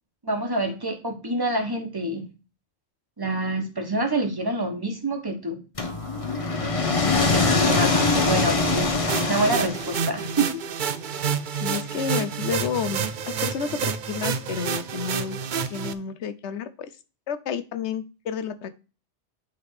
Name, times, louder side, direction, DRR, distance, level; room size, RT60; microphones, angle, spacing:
voice 1, 0.2-2.3 3.2-5.6 7.1-8.9 9.3-10.6, right 2 dB, 20° right, 4 dB, 1.3 m, -27 dB
sound 1, 5.8-10.2, left 3 dB, 30° left, 0.9 m, -23 dB
sound 2, 9.1-15.9, right 7 dB, 55° right, 0.6 m, -29 dB
voice 2, 11.5-15.4 15.7-16.9 17.3-18.7, left 7 dB, 80° left, 13 dB, 1.0 m, -30 dB
9.1 x 3.6 x 4.8 m, 0.32 s
omnidirectional pair, 1.1 m